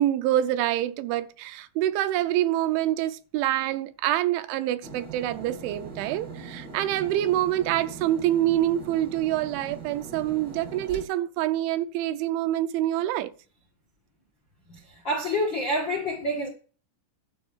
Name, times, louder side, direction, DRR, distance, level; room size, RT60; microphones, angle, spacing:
voice 1, 0.0-13.3, right 13 dB, 80° right, 2.9 m, -26 dB
sound 1, 4.8-11.0, right 4 dB, 55° right, 1.2 m, -41 dB
voice 2, 14.7-16.5, left 1 dB, 80° left, 1.0 m, -28 dB
11.5 x 5.4 x 7.1 m
omnidirectional pair, 5.6 m